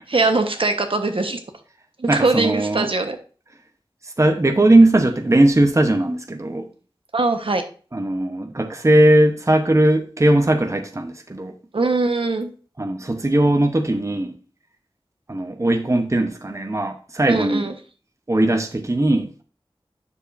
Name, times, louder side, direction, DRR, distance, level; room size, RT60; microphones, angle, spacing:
voice 1, 0.1-1.4 2.0-3.2 7.1-7.6 11.7-12.5 17.3-17.7, right 3 dB, 70° right, 1.2 m, -21 dB
voice 2, 2.1-2.9 4.0-6.7 7.9-11.5 12.8-14.4 15.3-17.7 18.3-19.4, right 1 dB, 30° right, 0.9 m, -18 dB
9.7 x 6.7 x 2.6 m
wide cardioid pair, 65°, 9 cm